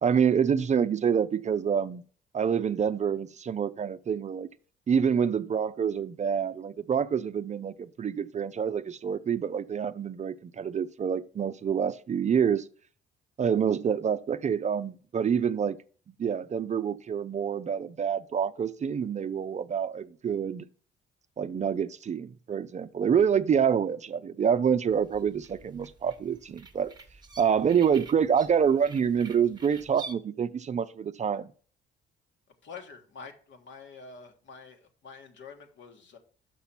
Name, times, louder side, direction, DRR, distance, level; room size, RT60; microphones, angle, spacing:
voice 1, 0.0-2.0 2.3-4.5 4.9-12.7 13.4-15.8 16.2-20.6 21.4-26.9 27.4-31.5, right 7 dB, 35° right, 0.4 m, -27 dB
sound 1, 24.9-30.1, right 4 dB, 20° right, 1.1 m, -48 dB
voice 2, 32.6-36.2, left 5 dB, 70° left, 1.5 m, -47 dB
6.1 x 5.7 x 5.8 m
cardioid pair, 90°, 20 cm